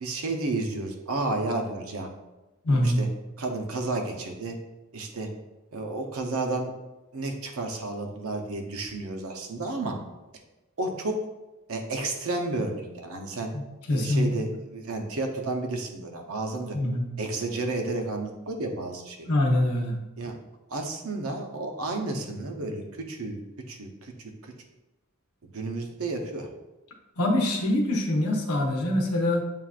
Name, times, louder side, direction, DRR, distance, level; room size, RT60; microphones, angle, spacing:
voice 1, 0.0-2.1 2.7-3.1 3.4-4.6 4.9-5.3 5.7-6.7 7.1-10.0 10.8-11.2 11.7-13.5 13.9-16.8 17.2-19.3 20.2-20.3 20.7-23.4 23.7-24.3 25.5-26.5, right 2 dB, 70° right, 3 dB, 0.7 m, -31 dB
voice 2, 2.6-3.0 13.5-13.6 13.9-14.3 16.7-17.0 19.2-20.0 27.2-29.4, left 1 dB, 75° left, 2 dB, 0.8 m, -24 dB
7.3 x 2.5 x 2.4 m, 1.0 s
head